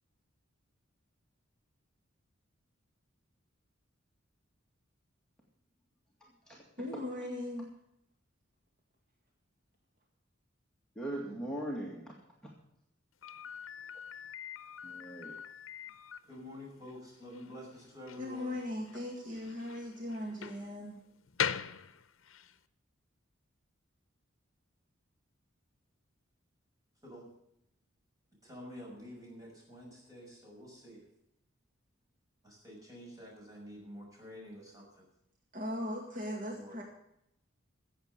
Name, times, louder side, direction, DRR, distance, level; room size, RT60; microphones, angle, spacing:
voice 1, 6.2-6.6 6.9-7.0 11.0-12.1 12.4-12.5 14.8-15.3, right 1 dB, 5° left, -4 dB, 2.0 m, -40 dB
voice 2, 6.8-7.7 18.2-21.0 35.5-36.8, left 1 dB, 45° right, 0 dB, 2.0 m, -39 dB
Slam, 13.2-22.6, left 8 dB, 75° left, 0.7 m, -42 dB
voice 3, 16.2-18.5 27.0-27.3 28.4-31.0 32.4-35.0 36.5-36.8, equal, 20° right, -3 dB, 6.2 m, -49 dB
15.0 x 8.1 x 6.7 m, 0.78 s
head